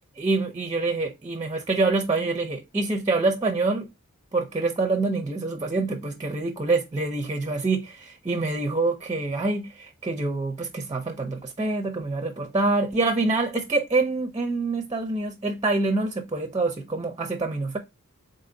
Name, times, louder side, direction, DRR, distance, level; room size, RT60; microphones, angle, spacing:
voice 1, 0.2-3.9 4.3-17.8, right 3 dB, 20° right, 0.5 m, -26 dB
4.0 x 2.6 x 3.8 m
head